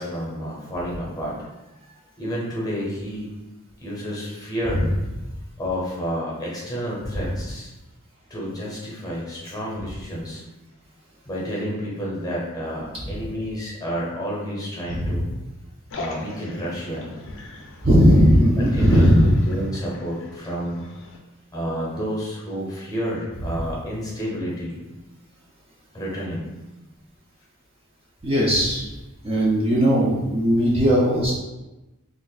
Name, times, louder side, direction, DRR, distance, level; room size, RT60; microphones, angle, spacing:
voice 1, 0.0-1.4 2.2-3.3 3.8-4.8 5.6-7.7 8.3-10.4 11.3-15.3 15.9-17.2 18.6-19.1 19.5-20.8 21.5-24.8 25.9-26.5, equal, 15° left, -5 dB, 0.8 m, -30 dB
voice 2, 14.9-15.2 17.8-19.4 23.4-23.5 28.2-28.9 29.2-31.3, equal, 25° right, -5 dB, 0.5 m, -18 dB
sound 1, 15.9-21.2, left 2 dB, 60° left, 0.5 m, -40 dB
2.5 x 2.4 x 3.9 m, 1.0 s
head